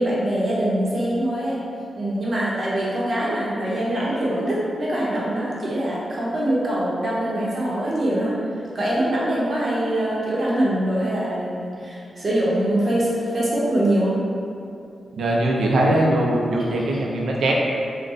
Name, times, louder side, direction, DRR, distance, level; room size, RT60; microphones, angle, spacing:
voice 1, 0.0-1.6 2.0-8.4 8.7-14.2, right 1 dB, 40° right, -7 dB, 0.7 m, -23 dB
voice 2, 15.1-17.5, right 1 dB, 80° right, -2 dB, 0.5 m, -21 dB
3.7 x 2.1 x 3.9 m, 2.5 s
wide cardioid pair, 155°, 0 cm